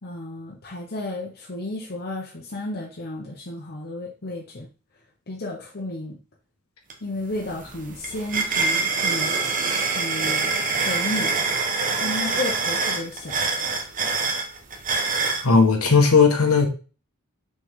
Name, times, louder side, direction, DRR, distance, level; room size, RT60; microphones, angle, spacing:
voice 1, 0.0-4.7 5.3-6.2 7.0-9.4 9.9-11.4 12.0-13.4, left 2 dB, 50° left, -2 dB, 1.1 m, -32 dB
sound 1, 6.9-7.0 7.3-15.5, right 4 dB, 40° right, 1.2 m, -25 dB
voice 2, 15.4-16.7, left 4 dB, 90° left, 3 dB, 1.6 m, -16 dB
6.3 x 4.3 x 3.8 m, 0.35 s
head